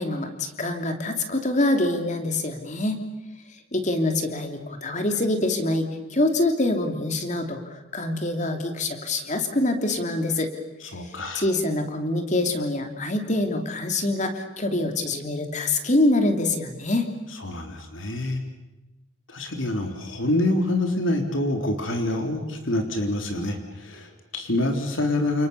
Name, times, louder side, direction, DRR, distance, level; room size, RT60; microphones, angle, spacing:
voice 1, 0.0-3.0 3.7-10.5 11.3-17.1, left 2 dB, 35° left, 5 dB, 3.1 m, -25 dB
voice 2, 10.8-11.4 17.4-18.4 19.3-25.5, left 1 dB, 85° left, 4 dB, 3.6 m, -26 dB
29.5 x 28.5 x 7.1 m, 0.98 s
head